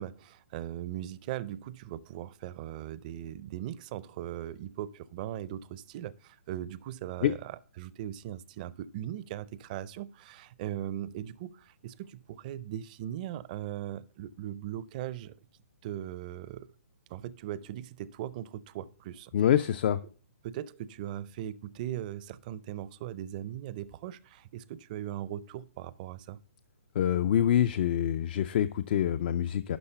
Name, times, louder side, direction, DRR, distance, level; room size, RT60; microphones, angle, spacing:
voice 1, 0.0-15.4 15.8-16.7 17.1-19.3 20.4-26.4, right 12 dB, 35° right, 0.5 m, -39 dB
voice 2, 19.3-20.0 26.9-29.8, left 10 dB, 45° left, 0.4 m, -26 dB
11.5 x 4.0 x 6.7 m
hypercardioid pair, 145°, 8 cm